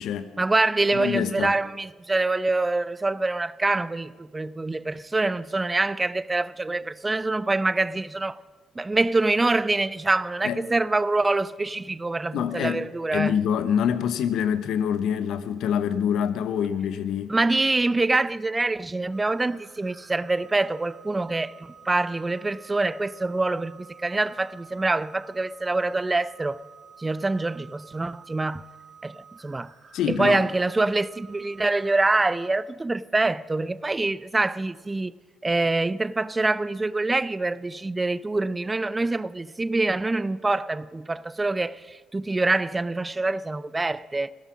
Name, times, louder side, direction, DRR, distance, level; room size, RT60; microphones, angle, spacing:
voice 1, 0.4-8.4 8.8-13.4 17.3-21.5 21.9-26.6 27.0-28.6 29.0-29.7 30.1-35.1 35.4-44.3, right 2 dB, 20° right, 0.5 m, -25 dB
voice 2, 0.9-1.5 10.4-10.6 12.3-17.3 29.9-30.5, left 8 dB, 70° left, 0.9 m, -26 dB
sound 1, 19.1-32.5, right 6 dB, 55° right, 1.9 m, -50 dB
16.5 x 13.0 x 6.2 m
hypercardioid pair, 55°, 0 cm